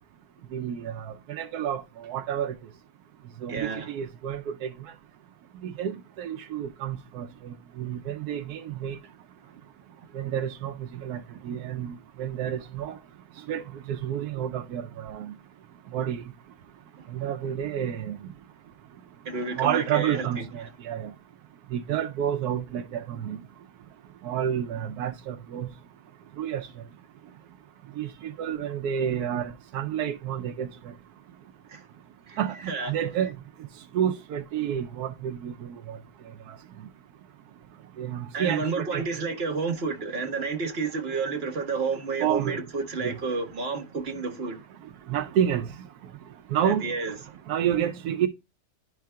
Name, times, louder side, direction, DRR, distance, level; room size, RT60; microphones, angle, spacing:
voice 1, 0.5-2.5 3.4-4.7 5.6-9.0 10.1-13.0 13.5-15.3 15.9-16.2 17.1-18.2 19.6-21.1 21.7-23.4 24.2-25.7 26.4-26.7 28.0-30.7 32.4-33.3 33.9-36.0 36.5-36.6 38.0-39.0 42.2-42.6 43.0-43.2 45.1-45.7 46.5-46.8 47.5-48.3, right 9 dB, 80° right, 1.1 m, -30 dB
voice 2, 3.5-3.9 17.0-17.1 19.2-20.7 31.7-31.8 32.3-32.4 32.7-32.9 38.3-44.6 46.6-47.2, right 4 dB, 40° right, 1.6 m, -30 dB
11.0 x 4.7 x 2.2 m
omnidirectional pair, 1.6 m